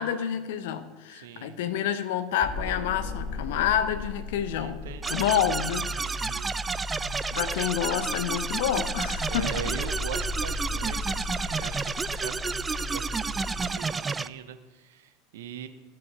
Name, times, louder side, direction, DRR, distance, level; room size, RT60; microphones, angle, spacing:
voice 1, 0.0-4.8 5.1-6.4 7.3-9.7, left 9 dB, 60° left, 12 dB, 0.7 m, -28 dB
voice 2, 1.1-1.6 4.6-5.4 6.0-6.5 9.3-15.7, right 8 dB, 65° right, 9 dB, 0.7 m, -41 dB
sound 1, 2.4-13.7, left 2 dB, 35° left, 3.0 m, -36 dB
sound 2, 5.0-14.3, right 4 dB, 20° right, 0.3 m, -31 dB
13.0 x 6.2 x 4.5 m, 1.3 s
figure-of-eight pair, 75°, 0 cm